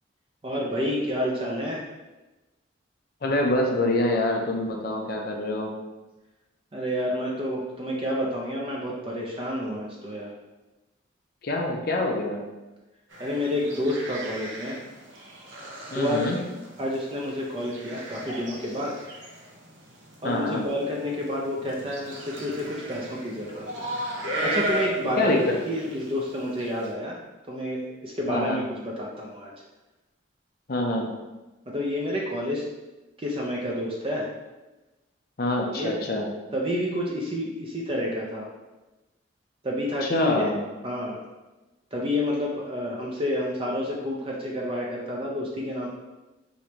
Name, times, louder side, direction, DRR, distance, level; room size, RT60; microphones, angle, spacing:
voice 1, 0.4-1.8 6.7-10.3 13.2-14.8 15.9-16.2 16.8-18.9 20.2-23.9 24.4-25.3 25.7-27.2 27.5-29.5 31.7-32.6 33.2-34.3 35.7-35.9 36.5-38.5 39.6-40.5 40.8-41.2 41.9-45.9, left 1 dB, 30° right, -3 dB, 0.5 m, -29 dB
voice 2, 3.2-5.7 11.4-12.4 15.9-16.4 20.2-20.6 25.2-25.5 28.3-28.6 30.7-31.1 35.4-36.2 40.0-40.6, left 2 dB, 50° left, 1 dB, 0.6 m, -25 dB
sound 1, 13.1-26.9, right 1 dB, 70° right, 0.8 m, -36 dB
5.0 x 3.1 x 2.9 m, 1.1 s
head